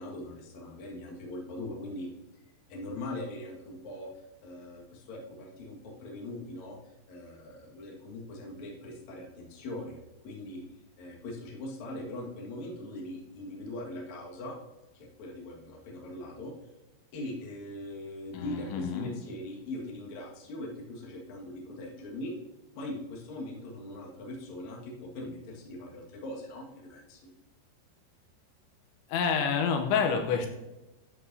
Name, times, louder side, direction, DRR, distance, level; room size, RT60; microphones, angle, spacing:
voice 1, 0.0-2.1 2.7-4.1 4.4-10.0 10.2-10.6 11.0-14.6 14.9-16.5 17.1-22.3 22.7-27.3, left 1 dB, 50° left, -2 dB, 2.4 m, -41 dB
voice 2, 18.3-19.1 29.1-30.5, left 6 dB, 80° left, 5 dB, 3.1 m, -28 dB
13.5 x 8.2 x 2.7 m, 1.0 s
omnidirectional pair, 5.3 m